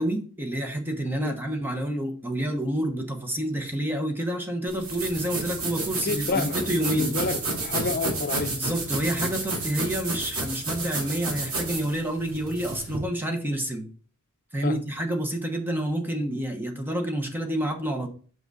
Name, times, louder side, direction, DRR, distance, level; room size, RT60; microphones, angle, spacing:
voice 1, 0.0-7.2 8.6-13.9 14.5-18.1, right 1 dB, 10° right, 0.9 m, -28 dB
sound 1, 4.7-13.0, right 3 dB, 75° right, 2.2 m, -31 dB
voice 2, 6.0-8.5 14.6-14.8, left 3 dB, 45° left, 0.6 m, -29 dB
5.8 x 5.2 x 4.1 m
head